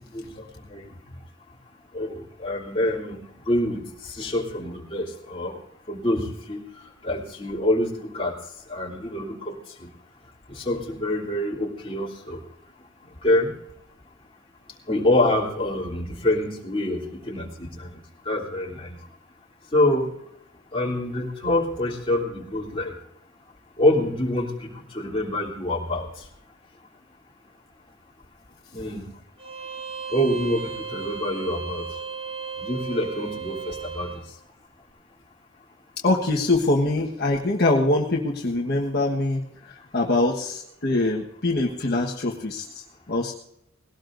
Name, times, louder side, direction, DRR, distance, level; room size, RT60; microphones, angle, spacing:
voice 1, 0.1-0.9 1.9-3.2 3.5-5.6 5.9-6.6 7.0-8.3 8.7-9.5 9.8-9.9 10.5-12.4 13.2-13.5 14.9-17.9 18.2-19.0 19.7-20.1 20.7-22.9 23.8-26.1 28.7-29.0 30.1-31.9 32.6-34.1, left 1 dB, 30° left, -2 dB, 3.2 m, -26 dB
Bowed string instrument, 29.4-34.2, right 6 dB, 30° right, 3.8 m, -35 dB
voice 2, 36.0-43.3, left 2 dB, 55° left, -1 dB, 1.4 m, -24 dB
20.0 x 17.5 x 2.6 m, 0.77 s
head